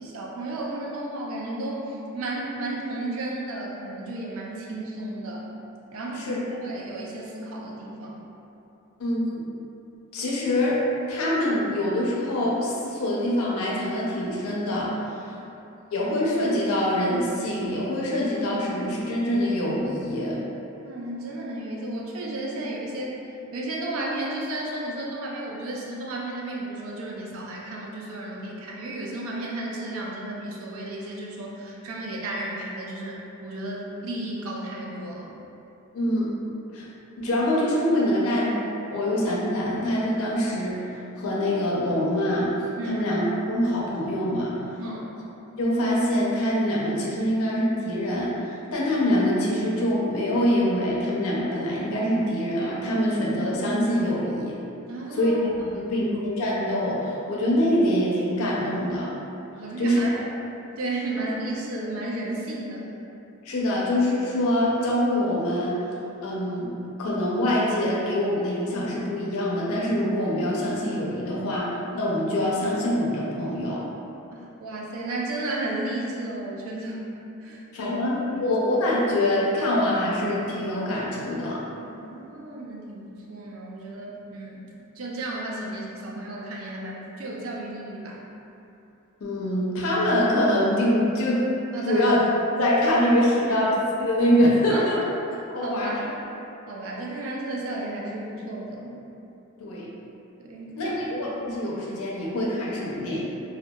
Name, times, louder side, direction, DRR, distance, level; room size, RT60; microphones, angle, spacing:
voice 1, 0.0-5.5 5.9-8.3 15.2-15.5 20.8-23.2 23.5-35.4 42.8-43.0 44.8-45.2 54.9-55.9 59.6-60.3 60.8-62.9 74.3-77.1 77.4-78.0 78.3-78.5 81.8-84.6 85.0-88.2 91.7-92.0 93.5-93.7 94.7-95.0 95.6-96.0 96.7-98.9 100.4-100.9, right 2 dB, 70° right, -3 dB, 0.4 m, -33 dB
voice 2, 9.0-9.4 10.1-10.8 11.1-15.3 15.9-20.4 35.9-36.3 36.7-36.9 37.2-38.5 38.9-42.5 42.9-44.8 45.6-54.6 55.1-59.1 59.8-60.0 63.4-65.8 66.2-66.7 67.0-73.8 77.7-81.6 89.2-91.5 91.9-92.2 92.6-93.7 94.0-95.0 95.5-95.9 99.6-99.9 100.8-103.2, left 1 dB, 80° left, -5 dB, 0.5 m, -24 dB
2.7 x 2.2 x 2.2 m, 2.8 s
head